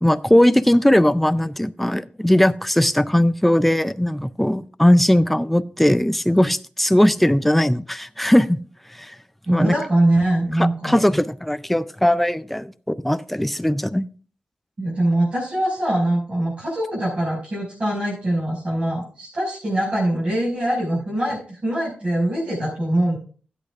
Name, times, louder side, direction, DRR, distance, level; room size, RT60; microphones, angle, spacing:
voice 1, 0.0-8.6 9.0-9.1 9.5-9.7 10.6-14.1, left 1 dB, 5° left, 14 dB, 0.3 m, -19 dB
voice 2, 9.4-11.0 14.8-23.2, right 1 dB, 45° right, -8 dB, 5.4 m, -22 dB
16.5 x 8.4 x 2.4 m, 0.40 s
wide cardioid pair, 150°, 3 cm